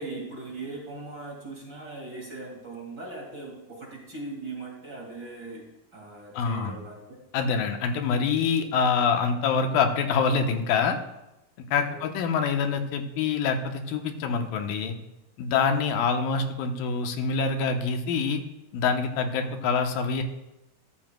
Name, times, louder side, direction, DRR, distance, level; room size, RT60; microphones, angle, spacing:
voice 1, 0.0-5.7 5.9-7.2 11.8-12.1 19.4-19.5, right 3 dB, 35° right, -2 dB, 2.4 m, -39 dB
voice 2, 6.3-6.8 7.3-11.0 11.7-15.0 15.4-18.4 18.7-20.2, left 5 dB, 90° left, 5 dB, 2.7 m, -25 dB
14.0 x 13.5 x 2.2 m, 0.94 s
omnidirectional pair, 3.9 m